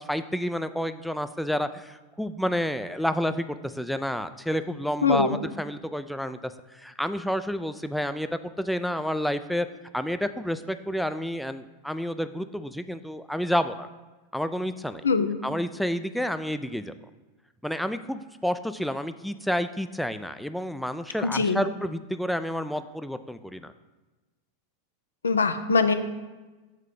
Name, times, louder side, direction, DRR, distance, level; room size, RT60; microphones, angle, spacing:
voice 1, 0.0-9.7 9.9-13.9 14.3-15.0 15.4-16.9 17.6-23.7, equal, ahead, 10 dB, 0.3 m, -30 dB
voice 2, 5.0-5.4 15.0-15.4 21.2-21.6 25.2-25.9, left 4 dB, 80° left, 9 dB, 0.4 m, -22 dB
6.5 x 3.7 x 5.0 m, 1.2 s
figure-of-eight pair, 90°, 0 cm